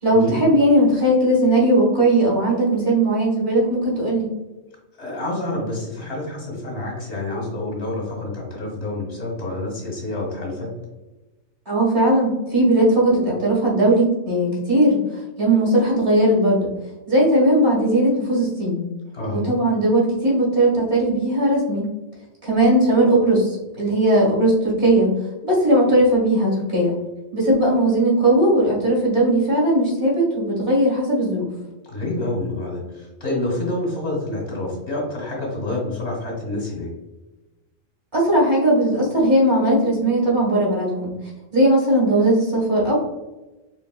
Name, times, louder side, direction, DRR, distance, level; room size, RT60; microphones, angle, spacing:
voice 1, 0.0-4.3 11.7-16.7 17.1-18.8 19.3-21.9 22.4-25.1 25.4-27.0 27.3-31.5 38.1-41.1 41.5-42.9, right 1 dB, 50° right, -4 dB, 1.9 m, -18 dB
voice 2, 5.0-10.7 19.1-19.5 31.8-36.9, left 2 dB, 55° left, -2 dB, 1.9 m, -28 dB
4.7 x 3.7 x 2.2 m, 1.1 s
omnidirectional pair, 1.4 m